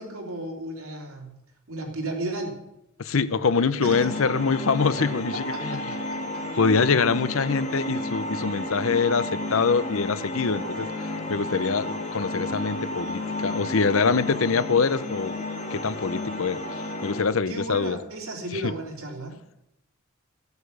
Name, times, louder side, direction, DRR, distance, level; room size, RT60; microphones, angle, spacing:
voice 1, 0.0-1.3 1.7-2.6 3.8-4.1 5.5-6.0 17.5-19.4, right 2 dB, 85° right, 0 dB, 3.4 m, -34 dB
voice 2, 3.0-5.8 6.6-10.9 11.3-15.3 15.7-16.6 17.0-18.0 18.5-18.6, left 5 dB, 70° left, 15 dB, 0.7 m, -24 dB
sound 1, 3.8-17.2, left 1 dB, 35° left, 2.2 m, -32 dB
14.5 x 8.1 x 6.8 m, 0.85 s
head